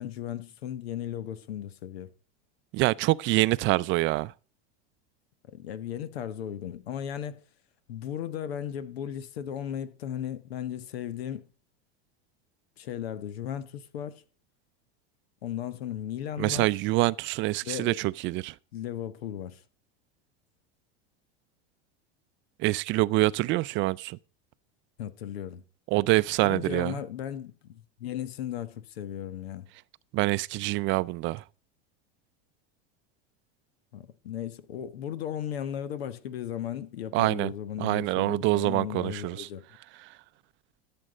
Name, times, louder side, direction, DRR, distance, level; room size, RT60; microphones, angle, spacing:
voice 1, 0.0-2.1 5.5-7.4 7.9-11.4 12.8-14.2 15.4-16.7 17.6-18.0 18.7-19.6 25.0-25.6 26.4-29.7 33.9-39.7, left 10 dB, 90° left, 1.3 m, -36 dB
voice 2, 2.7-4.3 16.4-18.5 22.6-24.2 25.9-26.9 30.1-31.4 37.1-37.5 37.8-39.5, right 19 dB, 40° right, 0.5 m, -25 dB
13.5 x 7.6 x 5.0 m
supercardioid pair, 125°, 30 cm